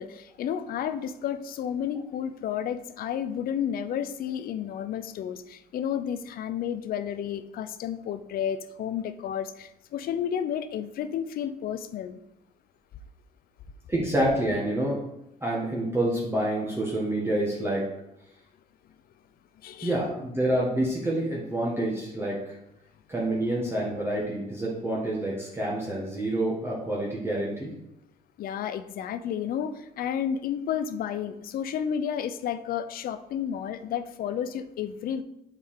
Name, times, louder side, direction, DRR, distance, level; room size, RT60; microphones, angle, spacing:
voice 1, 0.0-12.2 19.6-19.9 28.4-35.2, left 9 dB, 60° left, 12 dB, 0.6 m, -31 dB
voice 2, 13.9-15.0 15.4-17.9 19.8-22.6 23.1-27.7, right 1 dB, 15° right, -5 dB, 1.6 m, -27 dB
7.9 x 4.8 x 3.7 m, 0.84 s
cardioid pair, 110°, 17 cm